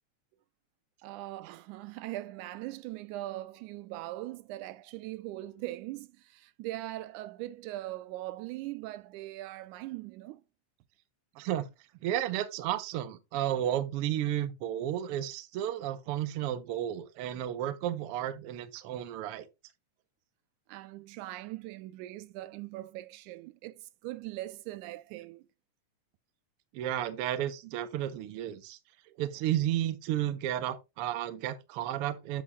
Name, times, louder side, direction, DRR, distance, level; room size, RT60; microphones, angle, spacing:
voice 1, 1.0-10.4 20.7-25.5 29.1-29.2, right 16 dB, 90° right, 2.1 m, -41 dB
voice 2, 11.4-11.7 12.0-19.5 26.7-28.8 29.2-32.4, right 12 dB, 70° right, 1.4 m, -32 dB
8.3 x 7.7 x 2.3 m
omnidirectional pair, 3.5 m